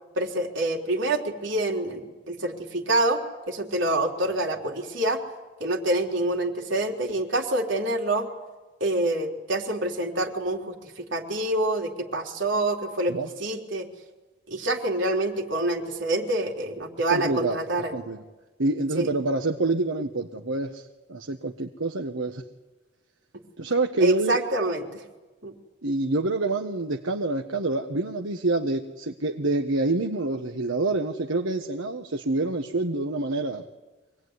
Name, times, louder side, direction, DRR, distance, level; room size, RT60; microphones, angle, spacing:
voice 1, 0.2-3.2 3.5-5.2 5.6-8.3 8.8-13.9 14.5-17.9 18.9-19.1 24.0-25.0 25.4-25.5, right 1 dB, 75° right, 0 dB, 3.8 m, -27 dB
voice 2, 17.1-17.6 17.9-18.2 18.6-20.8 21.1-22.4 23.6-24.4 25.8-33.7, right 2 dB, 90° right, 3 dB, 1.4 m, -27 dB
25.0 x 19.5 x 9.7 m, 1.2 s
head